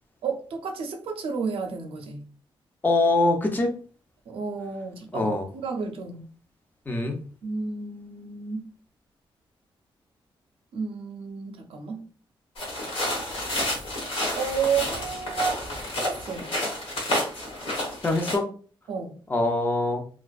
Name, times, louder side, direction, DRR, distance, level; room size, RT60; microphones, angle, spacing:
voice 1, 0.2-2.3 4.3-5.3 5.6-6.3 7.4-8.7 10.7-12.0 14.3-15.6 16.0-16.5 18.9-19.2, right 5 dB, 85° right, 0.5 m, -31 dB
voice 2, 2.8-3.7 5.1-5.4 6.9-7.2 18.0-18.5 19.3-20.0, left 2 dB, 20° left, 0.5 m, -23 dB
sound 1, 12.6-18.4, left 1 dB, 80° left, 1.1 m, -30 dB
2.5 x 2.2 x 2.3 m
cardioid pair, 115°, 9 cm